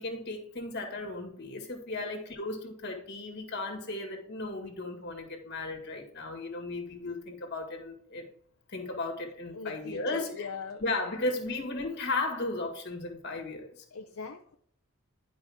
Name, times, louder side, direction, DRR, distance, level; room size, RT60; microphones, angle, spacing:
voice 1, 0.0-8.3 8.7-10.5 10.8-13.8, left 2 dB, 50° left, 3 dB, 2.1 m, -35 dB
voice 2, 9.5-10.8 13.9-14.6, left 5 dB, 75° left, 2 dB, 0.7 m, -41 dB
11.5 x 5.3 x 3.6 m, 0.63 s
head